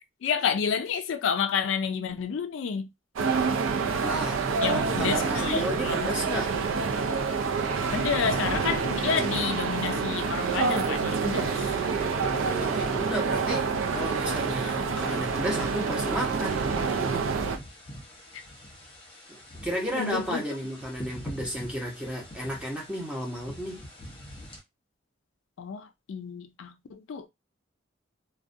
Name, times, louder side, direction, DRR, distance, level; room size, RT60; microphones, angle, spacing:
voice 1, 0.2-2.9 4.6-6.1 7.9-11.7 18.3-18.4 19.9-20.4 25.6-27.3, left 6 dB, 70° left, 0.3 m, -30 dB
sound 1, 3.2-17.6, right 5 dB, 90° right, 0.4 m, -27 dB
voice 2, 4.0-6.5 12.5-17.3 19.3-23.8, equal, 5° right, 0.8 m, -33 dB
sound 2, 7.5-9.4 11.2-13.1 14.9-16.8, right 1 dB, 40° right, 0.9 m, -40 dB
sound 3, 16.6-24.6, equal, 25° left, 0.8 m, -44 dB
2.4 x 2.1 x 2.5 m
head